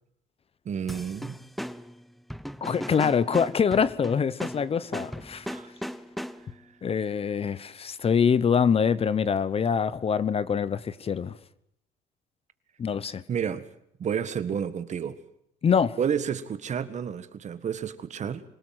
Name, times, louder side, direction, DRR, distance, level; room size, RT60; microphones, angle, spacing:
voice 1, 0.7-1.4 5.5-5.7 6.6-6.7 13.3-13.7 14.0-15.2 16.0-18.4, right 7 dB, 45° right, 1.7 m, -30 dB
sound 1, 0.9-6.6, equal, ahead, 0.9 m, -37 dB
voice 2, 2.6-5.5 6.8-11.4 12.8-13.2 15.6-16.0, left 6 dB, 35° left, 0.9 m, -25 dB
26.0 x 17.5 x 7.7 m
cardioid pair, 110°, 17 cm